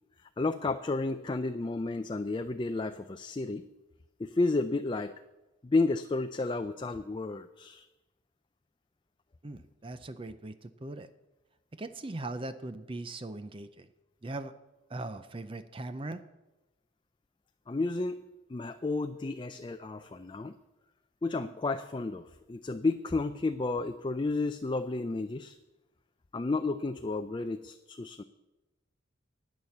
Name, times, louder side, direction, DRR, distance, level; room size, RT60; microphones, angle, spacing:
voice 1, 0.4-3.6 4.2-5.1 5.6-7.9 17.7-18.2 18.5-20.6 21.2-25.6 26.3-28.2, left 3 dB, 25° left, 8 dB, 0.4 m, -32 dB
voice 2, 9.4-11.1 11.7-13.9 14.2-14.5 14.9-16.2, right 2 dB, 25° right, 11 dB, 0.5 m, -40 dB
11.0 x 9.4 x 7.2 m, 1.1 s
head